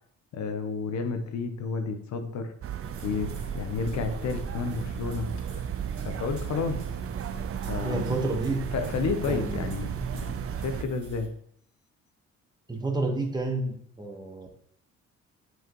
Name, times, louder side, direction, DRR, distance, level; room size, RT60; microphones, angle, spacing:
voice 1, 0.3-2.5 3.0-5.3 6.0-6.9 7.7-8.1 8.7-11.3, left 5 dB, 65° left, 8 dB, 1.0 m, -31 dB
sound 1, 2.6-10.9, right 8 dB, 50° right, 0.5 m, -34 dB
sound 2, 2.8-11.3, right 2 dB, 70° right, 2.0 m, -43 dB
voice 2, 7.8-8.7 9.3-9.7 12.7-14.5, right 2 dB, 15° right, 2 dB, 1.4 m, -30 dB
7.8 x 4.9 x 3.1 m, 0.67 s
cardioid pair, 90°, 30 cm